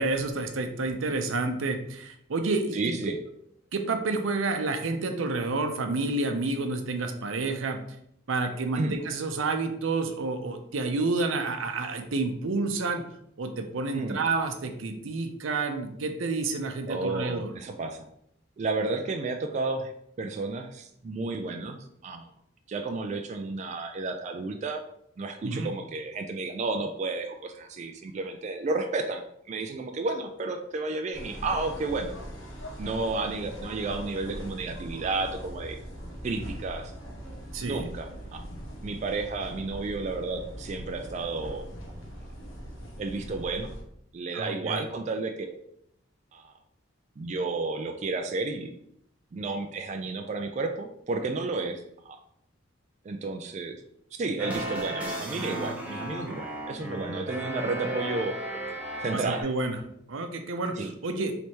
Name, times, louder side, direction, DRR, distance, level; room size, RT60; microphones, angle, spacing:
voice 1, 0.0-2.9 3.7-7.8 8.3-13.0 13.4-17.5 25.4-25.7 37.5-37.8 44.3-44.8 59.1-59.8 60.1-61.3, right 3 dB, 85° right, 6 dB, 0.6 m, -29 dB
voice 2, 2.7-3.2 8.8-9.0 13.9-14.2 16.9-18.1 18.6-19.9 20.2-22.3 22.7-24.8 25.2-32.1 32.8-35.8 36.2-36.9 37.6-38.4 38.8-41.7 43.0-43.7 44.1-45.6 46.3-46.5 47.2-48.7 49.3-52.2 53.0-53.8 54.1-58.3 59.0-59.4 60.8-60.9, right 3 dB, 35° right, 5 dB, 0.3 m, -32 dB
sound 1, 31.1-43.8, equal, 85° left, 1.0 m, -41 dB
sound 2, 54.4-59.4, right 1 dB, 5° right, 0.7 m, -34 dB
3.3 x 3.0 x 4.3 m, 0.73 s
head